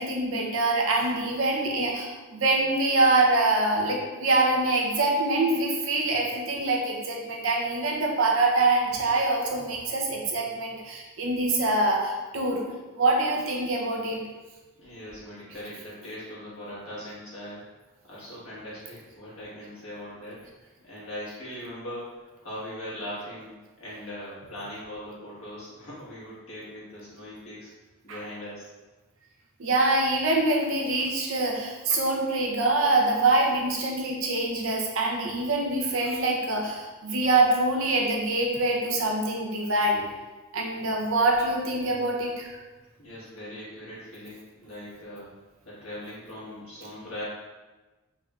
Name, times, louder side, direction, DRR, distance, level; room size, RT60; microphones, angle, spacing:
voice 1, 0.0-12.6 13.0-14.2 28.1-28.2 29.6-40.0 40.5-42.5, right 2 dB, 65° right, 0 dB, 0.6 m, -25 dB
voice 2, 14.8-17.6 18.0-27.7 28.0-28.7 43.0-45.3 45.6-47.3, left 1 dB, 65° left, -8 dB, 1.4 m, -40 dB
3.6 x 3.2 x 2.3 m, 1.2 s
head